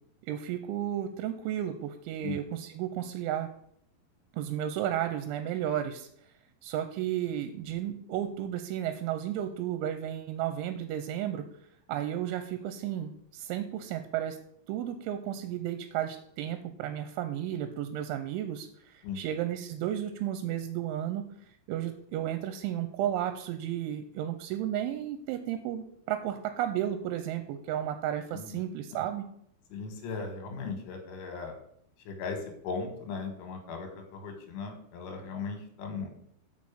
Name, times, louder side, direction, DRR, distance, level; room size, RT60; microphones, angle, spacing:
voice 1, 0.3-3.5 4.3-6.1 6.6-11.5 11.9-14.4 14.7-21.3 21.7-29.3, right 11 dB, 80° right, 8 dB, 2.9 m, -33 dB
voice 2, 28.3-28.6 28.9-29.0 29.7-31.6 32.1-36.1, left 4 dB, 80° left, 5 dB, 3.9 m, -38 dB
6.3 x 6.3 x 7.4 m, 0.68 s
omnidirectional pair, 5.6 m